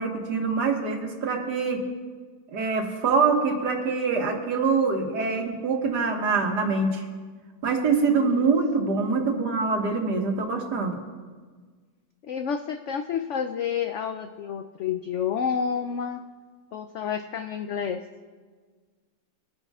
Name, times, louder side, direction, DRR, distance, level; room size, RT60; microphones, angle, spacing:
voice 1, 0.0-1.8 2.5-7.0 7.6-11.0, right 4 dB, 75° right, 2 dB, 2.0 m, -24 dB
voice 2, 8.1-8.5 12.2-16.2 16.7-18.0, left 7 dB, 80° left, 7 dB, 0.6 m, -30 dB
23.0 x 9.8 x 2.4 m, 1.5 s
omnidirectional pair, 1.8 m